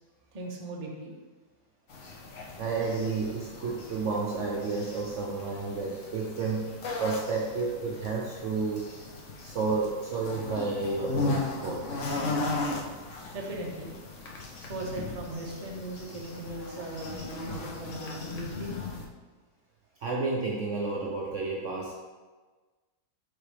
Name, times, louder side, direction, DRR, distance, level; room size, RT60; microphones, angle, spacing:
voice 1, 0.3-1.2 13.3-13.9 14.6-18.7, right 1 dB, 30° right, -1 dB, 0.7 m, -38 dB
sound 1, 1.9-19.0, left 3 dB, 55° left, 1.0 m, -37 dB
voice 2, 2.6-8.9 9.4-12.0 20.0-22.0, right 4 dB, 60° right, -2 dB, 0.9 m, -31 dB
6.6 x 4.9 x 3.3 m, 1.3 s
omnidirectional pair, 1.7 m